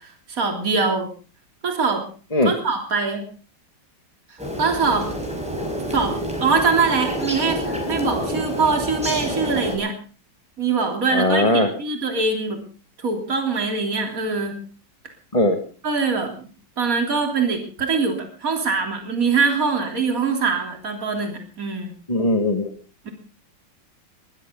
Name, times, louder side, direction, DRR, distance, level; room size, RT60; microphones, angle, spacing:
voice 1, 0.3-1.1 1.6-2.1 2.4-3.2 4.6-5.1 5.9-9.9 10.6-12.6 13.0-14.6 15.8-16.3 16.8-21.9 23.1-23.2, right 4 dB, 45° right, 4 dB, 3.7 m, -23 dB
sound 1, 4.4-9.8, equal, 5° right, 5.6 m, -28 dB
voice 2, 11.1-11.7 15.3-15.6 22.1-22.7, left 1 dB, 20° left, 4 dB, 1.8 m, -19 dB
22.0 x 15.5 x 3.8 m, 0.38 s
omnidirectional pair, 2.0 m